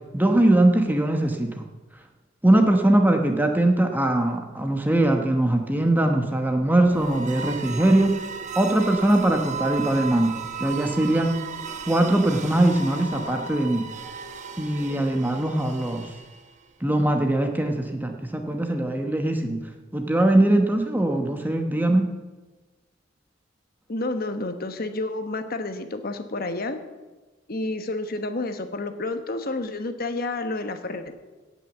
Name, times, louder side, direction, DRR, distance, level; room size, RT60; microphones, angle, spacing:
voice 1, 0.1-1.6 2.4-8.2 8.6-11.4 11.9-13.8 14.6-16.1 16.8-19.6 19.9-22.1, right 1 dB, 10° right, 4 dB, 1.0 m, -21 dB
sound 1, 6.8-16.7, right 5 dB, 40° right, 0.9 m, -35 dB
voice 2, 23.9-26.8 27.5-31.1, left 2 dB, 50° left, 8 dB, 1.1 m, -30 dB
17.0 x 6.2 x 7.2 m, 1.2 s
head